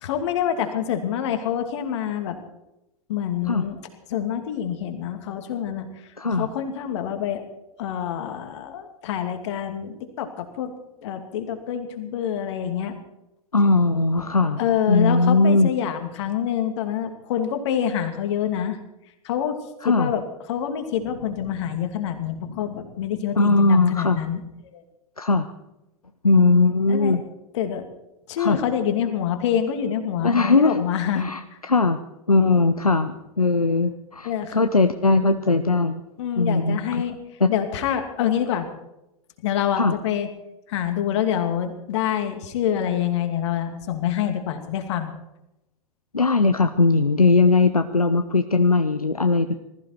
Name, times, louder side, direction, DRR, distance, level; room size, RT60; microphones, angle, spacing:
voice 1, 0.0-2.4 3.1-3.8 4.1-5.9 6.3-7.4 7.8-10.7 11.0-13.0 14.6-18.8 19.2-19.6 19.8-20.2 20.5-24.4 24.7-24.8 26.9-27.2 27.5-27.8 28.3-31.3 34.2-34.6 36.2-37.2 37.5-38.7 39.4-40.3 40.7-45.1, left 9 dB, 50° left, 7 dB, 2.6 m, -26 dB
voice 2, 6.2-6.5 13.5-14.6 14.9-15.7 19.8-20.1 23.4-24.2 25.2-25.5 26.2-27.2 28.4-28.6 30.2-30.8 31.1-32.0 32.3-36.0 36.4-36.8 37.4-37.5 39.8-40.0 46.1-49.5, left 3 dB, 85° left, 8 dB, 0.9 m, -19 dB
20.5 x 15.0 x 4.6 m, 0.91 s
figure-of-eight pair, 95°, 18 cm